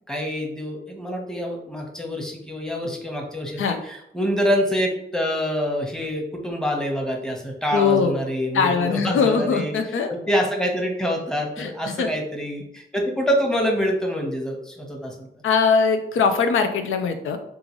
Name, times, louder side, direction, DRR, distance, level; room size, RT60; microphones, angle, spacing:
voice 1, 0.1-9.7 10.1-15.3, equal, 5° left, 1 dB, 1.0 m, -26 dB
voice 2, 7.7-8.1 8.5-10.1 11.6-12.1 15.4-17.4, left 5 dB, 85° left, 7 dB, 0.5 m, -21 dB
3.7 x 2.5 x 3.0 m, 0.77 s
cardioid pair, 55°, 20 cm